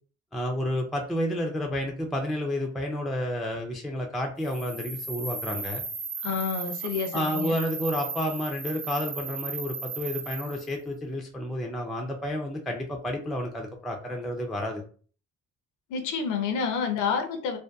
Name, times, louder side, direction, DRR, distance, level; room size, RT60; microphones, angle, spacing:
voice 1, 0.3-5.8 7.1-14.8, left 1 dB, ahead, 1 dB, 0.3 m, -30 dB
sound 1, 4.4-10.7, right 5 dB, 20° right, 0.7 m, -36 dB
voice 2, 6.2-7.5 15.9-17.6, left 5 dB, 85° left, 6 dB, 0.5 m, -29 dB
2.6 x 2.2 x 2.2 m, 0.43 s
cardioid pair, 90°, 30 cm